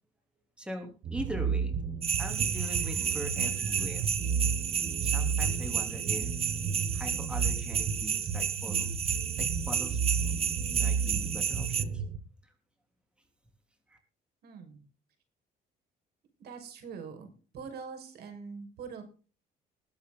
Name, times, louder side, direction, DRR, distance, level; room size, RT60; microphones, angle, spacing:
voice 1, 0.6-1.7 2.2-4.1 5.0-6.3 6.9-10.3 10.6-12.0 12.4-12.5 13.9-14.0, right 1 dB, 5° right, 3 dB, 3.3 m, -41 dB
sound 1, 1.0-12.2, right 6 dB, 55° right, 4.6 m, -33 dB
sound 2, 2.0-11.8, right 7 dB, 35° right, 1.0 m, -32 dB
voice 2, 14.4-14.8 16.4-17.3 17.5-19.0, right 5 dB, 70° right, 6 dB, 5.6 m, -43 dB
20.5 x 8.4 x 4.0 m, 0.36 s
cardioid pair, 110°, 17 cm